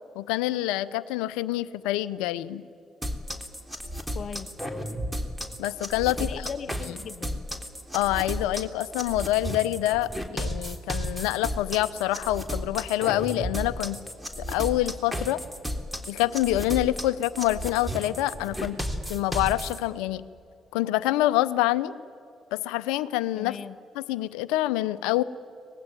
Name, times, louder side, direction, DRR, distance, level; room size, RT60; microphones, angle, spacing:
voice 1, 0.1-2.6 5.6-6.5 7.9-14.0 14.4-15.4 16.1-18.8 19.1-20.2 20.7-21.9 22.5-23.6 23.9-25.2, left 15 dB, 85° left, 15 dB, 0.7 m, -26 dB
sound 1, 3.0-19.8, equal, 10° right, 3.3 m, -33 dB
voice 2, 4.1-4.5 6.2-7.4 23.4-23.8, left 7 dB, 55° left, 13 dB, 0.9 m, -38 dB
24.5 x 20.0 x 9.5 m, 2.5 s
hypercardioid pair, 50°, 0 cm